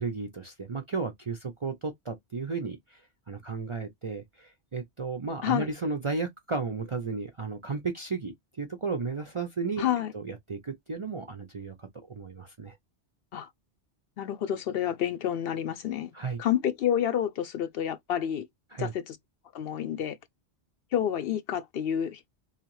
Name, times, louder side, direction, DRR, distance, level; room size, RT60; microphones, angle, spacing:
voice 1, 0.0-9.9 10.1-12.8 16.1-16.4 18.7-18.9, right 4 dB, 40° right, 0.5 m, -34 dB
voice 2, 9.8-10.1 13.3-13.5 14.2-16.1 16.4-18.5 18.8-19.2 19.5-20.2 20.9-22.2, left 10 dB, 65° left, 0.7 m, -29 dB
3.8 x 3.2 x 3.0 m
omnidirectional pair, 1.2 m